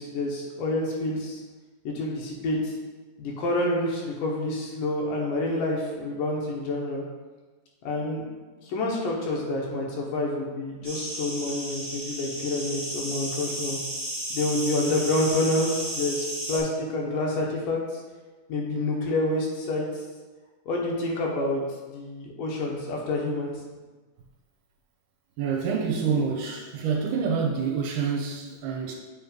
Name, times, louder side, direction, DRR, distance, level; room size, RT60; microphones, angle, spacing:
voice 1, 0.0-1.4 1.8-2.7 3.2-7.1 7.8-8.2 8.6-13.8 14.3-18.0 18.5-19.9 20.7-21.6 21.9-23.5, left 2 dB, 75° left, -2 dB, 2.6 m, -28 dB
sound 1, 10.8-16.6, right 1 dB, 15° right, 1.3 m, -33 dB
voice 2, 25.4-28.9, right 6 dB, 75° right, 0 dB, 2.2 m, -27 dB
7.7 x 3.2 x 5.2 m, 1.3 s
omnidirectional pair, 4.0 m